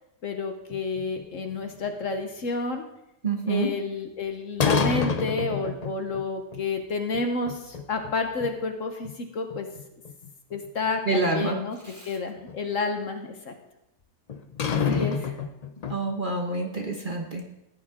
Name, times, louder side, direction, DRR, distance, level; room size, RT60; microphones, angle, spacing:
voice 1, 0.2-2.9 3.4-9.7 10.5-11.8 12.0-13.5 14.7-15.2, left 3 dB, 55° left, 5 dB, 1.3 m, -30 dB
sound 1, 0.7-2.1 4.6-6.2 6.5-6.6 7.1-8.1 8.4-8.5 9.0-9.1 9.5-10.9 12.5-12.6 14.3-16.1, left 6 dB, 75° left, 0.3 m, -28 dB
voice 2, 3.2-3.7 11.0-11.6 11.8-12.1 14.9-15.1 15.9-17.5, right 3 dB, 35° right, 2 dB, 1.1 m, -27 dB
15.0 x 10.0 x 3.7 m, 0.88 s
omnidirectional pair, 1.7 m